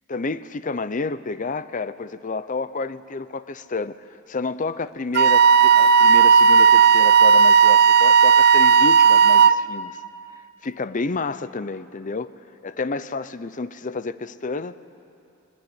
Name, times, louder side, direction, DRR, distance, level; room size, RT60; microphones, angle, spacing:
voice 1, 0.1-10.0 10.6-12.3 12.6-14.8, left 3 dB, 40° left, 14 dB, 0.6 m, -30 dB
Wind instrument woodwind instrument, 5.1-9.6, right 6 dB, 50° right, 0.5 m, -13 dB
20.5 x 19.5 x 9.8 m, 2.6 s
head